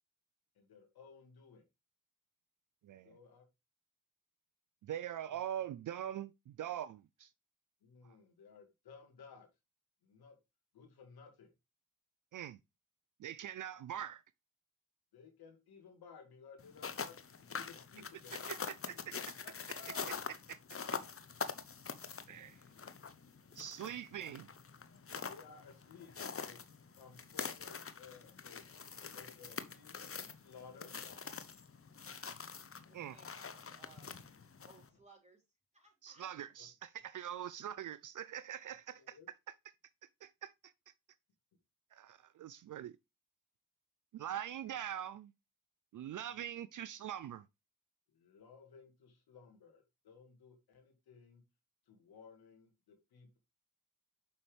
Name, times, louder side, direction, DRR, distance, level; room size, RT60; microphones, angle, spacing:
voice 1, 0.6-1.6 3.0-3.4 5.2-5.4 7.8-9.5 10.0-10.4 10.7-11.5 15.1-18.6 18.9-20.3 25.1-26.6 27.0-28.7 29.0-29.9 30.3-30.9 36.6-36.7 38.9-39.3 46.0-46.4 48.1-51.4 51.9-53.4, left 5 dB, 75° left, 1.9 m, -58 dB
voice 2, 4.8-7.3 12.3-12.6 13.2-14.2 18.5-19.1 20.0-20.1 20.5-20.6 22.3-22.6 23.6-24.5 32.9-33.2 36.0-39.2 40.2-40.7 41.9-43.0 44.1-45.3 45.9-47.4, right 10 dB, 55° right, 0.5 m, -43 dB
sound 1, 16.6-34.9, left 6 dB, 35° left, 0.9 m, -45 dB
voice 3, 32.9-34.2 34.6-35.4 35.7-36.3 36.6-36.7, right 3 dB, 20° right, 4.3 m, -63 dB
6.9 x 5.5 x 3.3 m
supercardioid pair, 40°, 38 cm